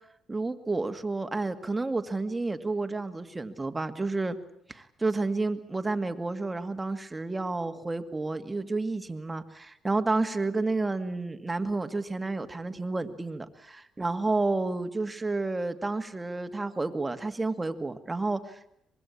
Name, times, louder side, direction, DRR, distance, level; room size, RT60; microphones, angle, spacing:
voice 1, 0.3-4.4 4.7-18.7, right 3 dB, 20° right, 8 dB, 2.1 m, -30 dB
25.0 x 21.5 x 8.6 m, 0.73 s
cardioid pair, 90°, 0 cm